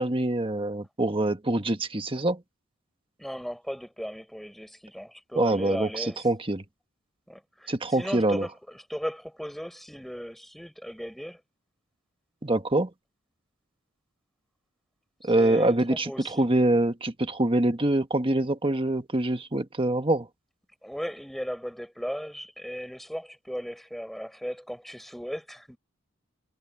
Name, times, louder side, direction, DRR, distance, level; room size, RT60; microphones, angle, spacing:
voice 1, 0.0-2.4 5.4-6.6 7.7-8.5 12.4-12.9 15.2-20.3, right 1 dB, 25° right, 1.4 m, -25 dB
voice 2, 3.2-6.3 7.3-11.4 15.3-16.5 20.8-25.8, equal, ahead, 5.7 m, -36 dB
head